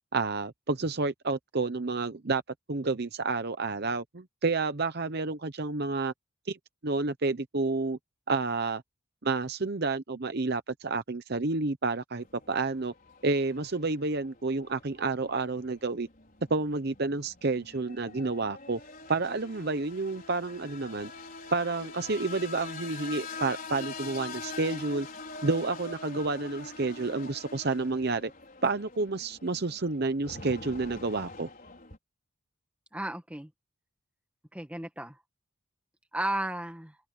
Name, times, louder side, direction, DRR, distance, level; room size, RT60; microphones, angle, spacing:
voice 1, 0.1-2.4 2.7-6.1 6.5-6.6 6.8-8.0 8.3-8.8 9.2-12.9 13.2-16.1 16.5-18.8 19.1-21.1 21.5-25.1 25.4-28.3 28.6-31.5, right 3 dB, 50° right, 0.8 m, -30 dB
sound 1, 12.2-32.0, left 3 dB, 40° left, 5.2 m, -44 dB
voice 2, 32.9-33.5 34.5-35.2 36.1-37.0, right 1 dB, 5° right, 1.8 m, -34 dB
open air
head